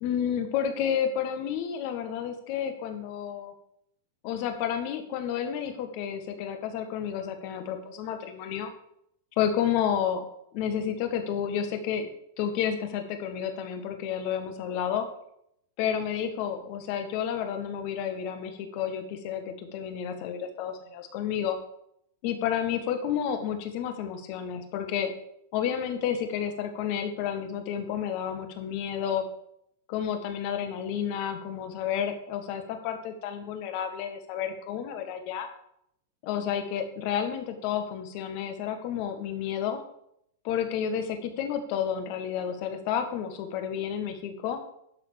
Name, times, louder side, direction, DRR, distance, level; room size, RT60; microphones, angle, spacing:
voice 1, 0.0-3.5 4.2-8.7 9.4-10.2 10.5-12.1 12.4-15.1 15.8-21.6 22.2-25.1 25.5-29.2 29.9-35.5 36.2-39.8 40.4-44.6, left 8 dB, 50° left, 6 dB, 1.8 m, -30 dB
11.5 x 4.2 x 7.1 m, 0.74 s
hypercardioid pair, 120°, 0 cm